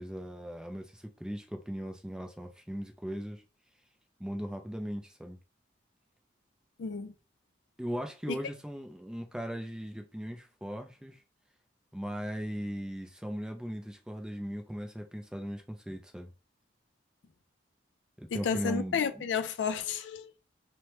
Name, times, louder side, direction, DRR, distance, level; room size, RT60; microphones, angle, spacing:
voice 1, 0.0-3.4 4.2-5.4 7.8-11.2 11.9-16.3 18.2-19.2, equal, 5° right, 0.3 m, -38 dB
voice 2, 6.8-7.1 8.3-8.4 18.3-20.3, left 6 dB, 75° left, 0.4 m, -32 dB
3.1 x 2.1 x 2.8 m
head